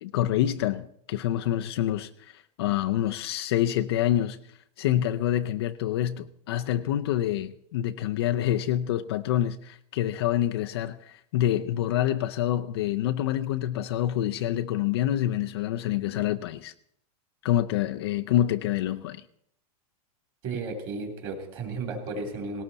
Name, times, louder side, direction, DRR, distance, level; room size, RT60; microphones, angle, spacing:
voice 1, 0.0-4.4 4.8-16.7 17.4-19.2, left 12 dB, 40° left, 0.5 m, -27 dB
voice 2, 20.4-22.6, right 3 dB, 25° right, 2.9 m, -34 dB
19.0 x 17.5 x 4.1 m
supercardioid pair, 180°, 20 cm